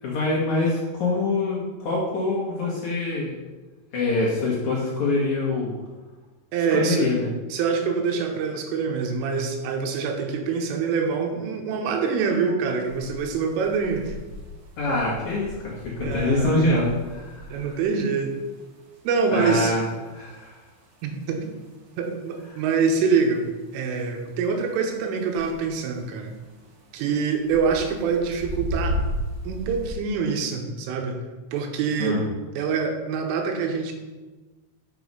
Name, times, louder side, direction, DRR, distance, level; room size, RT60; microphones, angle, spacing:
voice 1, 0.0-3.4 3.9-5.7 6.7-7.3 14.8-17.7 19.3-20.5 32.0-32.2, left 2 dB, 65° left, -6 dB, 1.9 m, -25 dB
voice 2, 6.5-7.1 7.5-14.2 16.0-16.7 17.5-18.4 19.0-19.7 21.0-21.5 22.0-23.5 23.7-26.3 26.9-29.0 29.4-31.2 31.5-32.2 32.6-33.9, right 5 dB, 85° right, 4 dB, 3.5 m, -25 dB
sound 1, 12.8-29.9, equal, 70° right, 1.7 m, -36 dB
6.9 x 6.1 x 5.4 m, 1.2 s
omnidirectional pair, 5.6 m